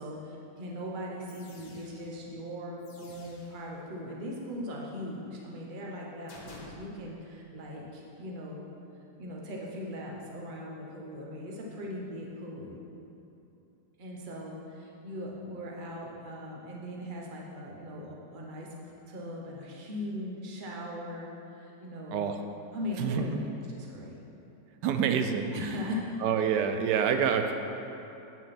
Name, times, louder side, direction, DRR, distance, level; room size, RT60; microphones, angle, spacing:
voice 1, 0.0-8.6 9.2-12.8 14.0-18.7 19.1-22.2 22.7-24.2 25.5-26.0, left 1 dB, 35° right, -2 dB, 1.0 m, -39 dB
sound 1, 0.6-0.7 1.3-2.2 2.8-3.7 6.3-6.7, left 2 dB, 75° left, 1.7 m, -51 dB
voice 2, 24.8-25.7 26.2-27.5, right 7 dB, 80° right, 6 dB, 1.2 m, -27 dB
8.9 x 6.0 x 4.3 m, 2.9 s
omnidirectional pair, 1.9 m